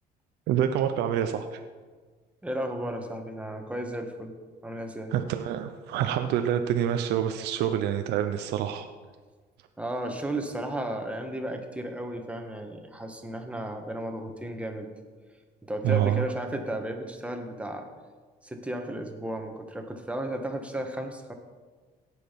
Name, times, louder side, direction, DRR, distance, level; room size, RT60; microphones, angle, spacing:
voice 1, 0.5-1.6 5.1-8.9 15.8-16.3, right 10 dB, 85° right, 7 dB, 0.7 m, -27 dB
voice 2, 2.4-4.3 4.6-5.1 9.8-14.9 15.6-17.9 18.4-21.3, right 1 dB, 5° right, 4 dB, 1.6 m, -34 dB
17.0 x 6.4 x 5.2 m, 1.4 s
cardioid pair, 110°, 17 cm